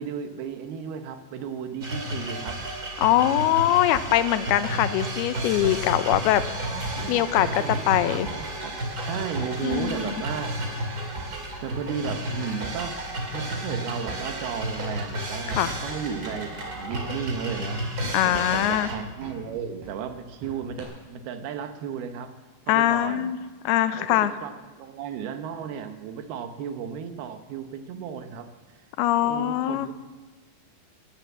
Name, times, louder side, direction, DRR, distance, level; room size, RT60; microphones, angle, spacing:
voice 1, 0.0-2.6 4.6-4.8 6.6-10.5 11.6-12.9 13.3-17.8 18.2-22.3 22.7-23.3 24.0-28.5 29.2-29.9, right 7 dB, 85° right, 8 dB, 3.0 m, -34 dB
sound 1, 1.8-18.9, right 1 dB, 30° right, 2.2 m, -32 dB
voice 2, 3.0-6.4 7.1-8.3 9.6-10.2 15.5-15.7 18.1-18.9 22.7-23.4 23.7-24.3 29.0-29.9, left 13 dB, 90° left, 12 dB, 2.7 m, -22 dB
sound 2, 3.1-20.8, right 2 dB, 55° right, 5.6 m, -45 dB
16.0 x 10.5 x 7.4 m, 1.3 s
omnidirectional pair, 4.4 m